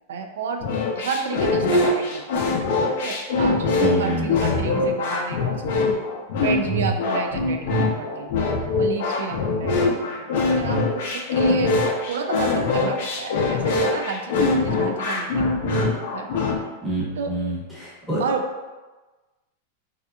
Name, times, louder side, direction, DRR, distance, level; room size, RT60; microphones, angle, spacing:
voice 1, 0.1-0.6 1.0-2.2 3.0-5.6 6.4-8.5 8.8-10.3 10.5-11.8 12.1-15.5 16.1-16.3 17.2-17.4 18.2-18.7, right 5 dB, 85° right, 4 dB, 0.3 m, -31 dB
sound 1, 0.6-16.6, left 3 dB, 65° left, 0.5 m, -22 dB
voice 2, 3.8-4.3 16.8-18.2, right 1 dB, ahead, -10 dB, 0.9 m, -26 dB
2.7 x 2.3 x 2.3 m, 1.2 s
supercardioid pair, 150°, 0 cm